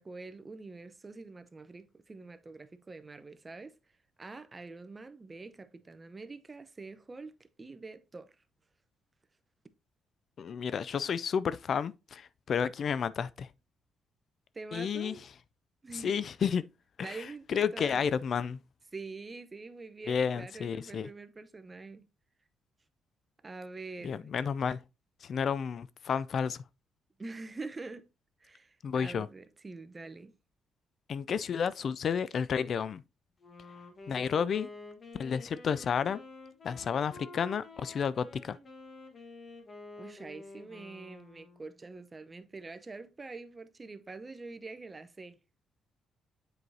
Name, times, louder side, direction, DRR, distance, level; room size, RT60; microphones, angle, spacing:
voice 1, 0.0-3.8 4.2-8.3 14.5-15.2 15.8-16.2 17.0-18.0 18.9-22.1 23.4-24.3 27.2-28.1 28.4-30.3 40.0-45.4, right 3 dB, 25° right, 0.7 m, -45 dB
voice 2, 10.4-13.5 14.7-15.1 15.9-16.7 17.0-18.6 20.1-21.1 24.0-24.8 25.2-26.6 28.8-29.3 31.1-33.0 34.1-34.7 35.2-36.2 36.6-38.6, left 7 dB, 55° left, 0.3 m, -31 dB
Wind instrument woodwind instrument, 33.4-41.7, left 2 dB, 40° left, 1.4 m, -49 dB
7.7 x 4.7 x 2.7 m
cardioid pair, 90°, 0 cm